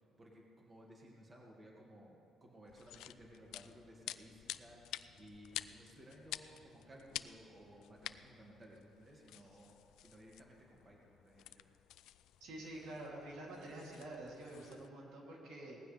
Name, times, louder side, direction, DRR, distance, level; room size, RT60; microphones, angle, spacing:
voice 1, 0.2-11.7, equal, 25° right, -2 dB, 2.1 m, -58 dB
sound 1, 2.7-14.9, left 13 dB, 90° left, 0.3 m, -51 dB
voice 2, 12.4-15.8, right 1 dB, 80° right, -3 dB, 3.0 m, -48 dB
18.5 x 15.0 x 3.4 m, 2.6 s
cardioid pair, 120°, 0 cm